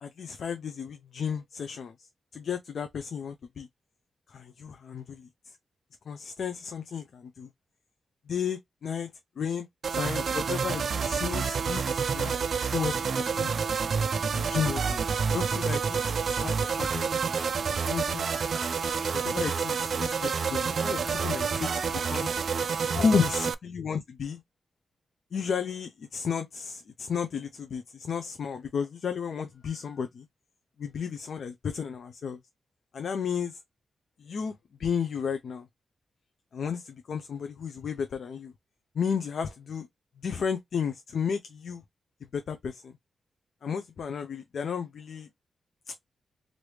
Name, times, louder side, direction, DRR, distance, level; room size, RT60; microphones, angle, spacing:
voice 1, 0.0-2.1 2.3-3.7 4.3-5.3 6.1-7.5 8.3-9.1 9.4-13.5 14.3-15.0 15.3-17.1 17.7-18.3 19.2-22.3 22.9-24.4 25.3-30.3 30.8-32.4 32.9-33.6 34.2-34.5 34.8-35.7 36.5-38.5 38.9-39.9 40.2-41.8 42.3-42.9 43.6-45.3 45.9-46.0, left 6 dB, 60° left, 0.4 m, -33 dB
sound 1, 9.8-23.5, right 6 dB, 55° right, 0.3 m, -28 dB
sound 2, 11.1-23.0, right 2 dB, 15° right, 1.1 m, -48 dB
3.2 x 2.5 x 3.1 m
wide cardioid pair, 155°, 0 cm